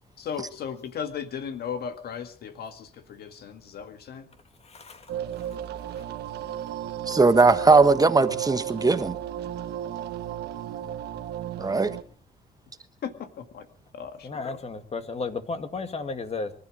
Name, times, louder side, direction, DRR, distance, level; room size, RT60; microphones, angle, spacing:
voice 1, 0.2-4.3 13.0-13.7 13.9-14.6, left 7 dB, 70° left, 8 dB, 1.8 m, -36 dB
voice 2, 4.6-5.1 5.4-5.5 5.9-6.0 14.2-16.5, left 4 dB, 40° left, 8 dB, 2.3 m, -34 dB
sound 1, 5.1-12.0, right 10 dB, 85° right, 1.4 m, -34 dB
voice 3, 7.1-9.1 11.6-11.9, right 3 dB, 20° right, 10 dB, 1.3 m, -19 dB
24.0 x 12.0 x 4.9 m, 0.43 s
cardioid pair, 90°, 17 cm